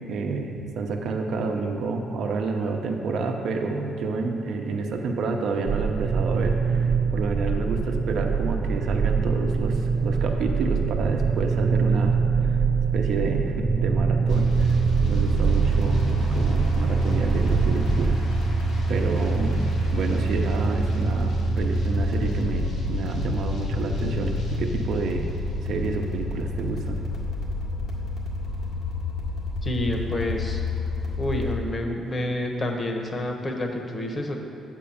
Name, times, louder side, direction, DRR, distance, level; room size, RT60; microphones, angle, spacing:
voice 1, 0.0-12.6 12.9-14.8 15.1-18.2 18.5-18.6 18.9-25.3 25.6-27.0, right 4 dB, 70° right, 3 dB, 0.8 m, -29 dB
sound 1, 5.7-18.2, right 5 dB, 40° right, 0.4 m, -24 dB
sound 2, 14.3-31.5, equal, 75° left, 1.8 m, -27 dB
voice 2, 29.6-30.6 31.2-34.4, left 1 dB, 30° left, 3 dB, 1.1 m, -28 dB
8.5 x 4.6 x 7.2 m, 2.7 s
cardioid pair, 90°, 0 cm